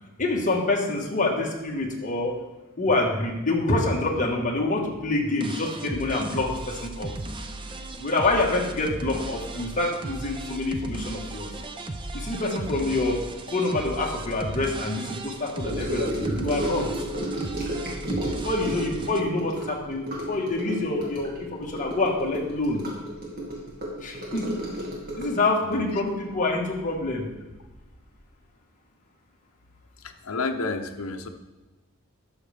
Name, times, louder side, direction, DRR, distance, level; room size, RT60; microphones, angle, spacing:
voice 1, 0.2-2.4 2.8-7.1 8.0-11.5 12.1-16.9 18.4-22.8 24.0-24.6 25.2-27.3, left 2 dB, 35° left, -1 dB, 1.4 m, -26 dB
sound 1, 5.4-19.2, right 2 dB, 25° right, 0.5 m, -36 dB
Gurgling / Sink (filling or washing) / Trickle dribble, 15.6-27.3 27.5-27.9 28.1-28.2, right 1 dB, 45° right, 2.1 m, -33 dB
voice 2, 30.0-31.3, left 3 dB, 75° left, 6 dB, 0.8 m, -31 dB
12.0 x 6.5 x 3.5 m, 1.1 s
head